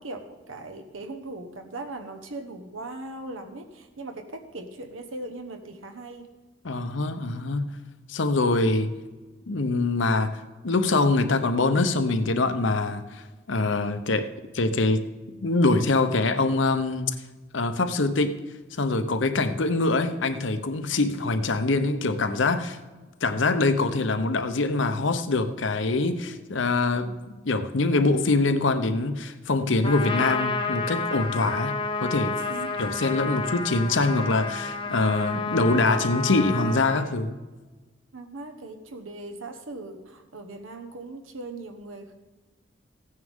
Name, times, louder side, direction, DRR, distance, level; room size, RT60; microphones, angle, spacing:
voice 1, 0.0-6.2 32.5-32.7 38.1-42.1, right 2 dB, 90° right, 5 dB, 1.3 m, -39 dB
voice 2, 6.6-7.8 8.1-8.9 9.5-14.3 14.5-15.0 15.4-17.1 17.5-18.3 18.8-22.8 23.2-31.7 32.0-32.3 32.8-37.4, left 3 dB, 70° left, 9 dB, 0.8 m, -24 dB
Trumpet, 29.8-37.1, left 3 dB, 25° left, 0.9 m, -30 dB
15.5 x 9.6 x 3.6 m, 1.3 s
head